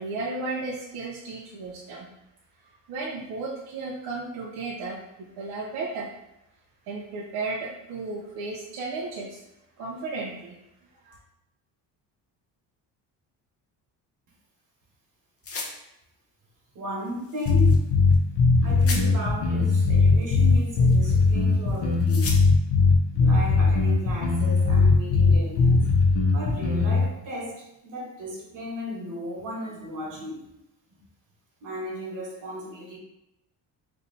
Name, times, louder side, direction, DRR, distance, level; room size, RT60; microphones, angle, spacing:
voice 1, 0.0-2.1 2.9-6.1 6.9-9.4 9.8-10.6 11.0-11.2, right 3 dB, 65° right, -3 dB, 0.9 m, -34 dB
sound 1, 15.4-15.7 17.0-17.8 18.1-18.2 18.8-19.0 20.1-21.3 21.7-22.4, left 3 dB, 35° left, 0.8 m, -36 dB
voice 2, 16.7-17.8 18.6-22.4 23.1-25.8 26.3-30.4 31.6-33.0, equal, 45° right, -3 dB, 1.5 m, -35 dB
sound 2, 17.4-27.0, left 4 dB, 75° left, 1.0 m, -19 dB
3.3 x 2.8 x 4.1 m, 0.86 s
cardioid pair, 115°, 41 cm